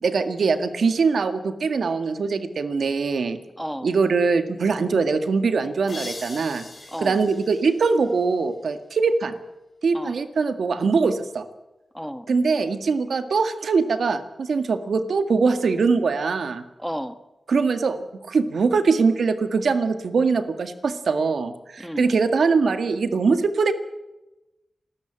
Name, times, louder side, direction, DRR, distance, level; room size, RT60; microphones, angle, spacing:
voice 1, 0.0-3.4 3.8-6.7 7.0-9.3 9.8-11.4 12.3-16.6 17.5-23.7, right 4 dB, 85° right, 9 dB, 1.8 m, -22 dB
voice 2, 3.6-3.9 6.9-7.2 9.9-10.1 11.9-12.3 16.8-17.2 21.8-22.1, equal, ahead, 10 dB, 1.4 m, -32 dB
sound 1, 5.9-8.6, left 2 dB, 40° left, 4.8 m, -41 dB
28.5 x 13.0 x 9.0 m, 1.0 s
wide cardioid pair, 95°, 0 cm